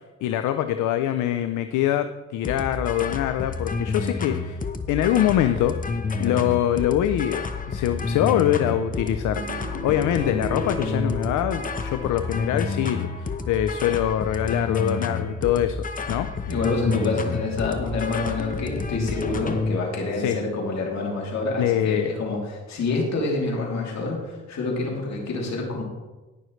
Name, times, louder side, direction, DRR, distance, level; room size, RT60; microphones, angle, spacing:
voice 1, 0.2-4.6 4.9-5.8 6.2-15.8 16.1-16.5 20.2-20.4 21.6-22.1, left 11 dB, 80° left, 9 dB, 0.5 m, -24 dB
sound 1, 2.4-19.8, left 4 dB, 25° left, 0.9 m, -29 dB
sound 2, 8.0-13.7 14.4-14.8 16.1-16.2 16.9-17.2 19.3-20.0 20.6-20.7 20.9-21.0, right 2 dB, 65° right, 2.4 m, -39 dB
voice 2, 16.4-25.8, left 3 dB, 65° left, -1 dB, 3.1 m, -27 dB
19.0 x 6.3 x 3.2 m, 1.2 s
cardioid pair, 90°, 30 cm